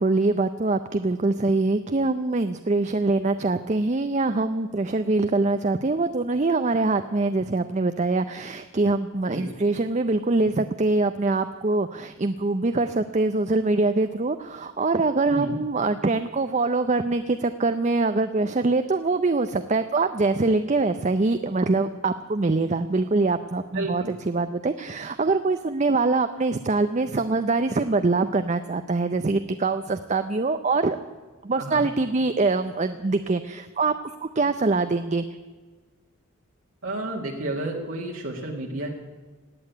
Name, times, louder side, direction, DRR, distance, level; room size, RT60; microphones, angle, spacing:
voice 1, 0.0-31.0 31.4-33.9 34.2-35.2, right 3 dB, 35° right, 9 dB, 0.5 m, -24 dB
voice 2, 23.7-24.1 31.6-31.8 36.8-38.9, right 2 dB, 70° right, -1 dB, 1.9 m, -31 dB
17.5 x 8.8 x 9.3 m, 1.4 s
head